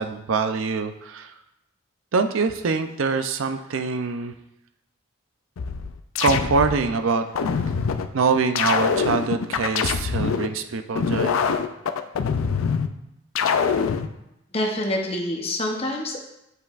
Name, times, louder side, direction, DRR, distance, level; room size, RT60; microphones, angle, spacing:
voice 1, 0.0-1.3 2.1-4.3 6.2-7.3 7.6-7.7 8.1-11.4, right 4 dB, 80° right, 8 dB, 0.5 m, -24 dB
sound 1, 5.6-6.9 7.4-8.1 8.6-10.5 11.0-12.9 13.4-14.1, left 6 dB, 90° left, 0.4 m, -24 dB
voice 2, 14.5-16.2, left 1 dB, 30° left, 0 dB, 0.8 m, -26 dB
8.2 x 5.3 x 2.4 m, 0.85 s
head